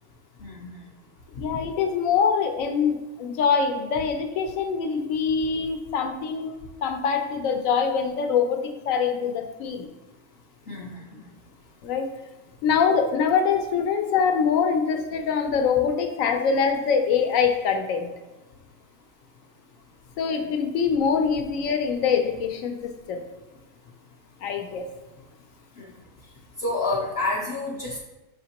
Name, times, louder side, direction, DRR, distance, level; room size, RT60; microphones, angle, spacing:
voice 1, 0.4-0.8 10.7-11.3 20.3-20.5 25.8-25.9 26.6-28.0, left 2 dB, 60° left, -3 dB, 0.7 m, -29 dB
voice 2, 1.4-6.5 6.8-9.9 11.8-12.1 12.6-18.1 20.2-23.2 24.4-24.9, left 6 dB, 85° left, 5 dB, 1.0 m, -24 dB
5.0 x 3.5 x 2.9 m, 1.1 s
omnidirectional pair, 1.4 m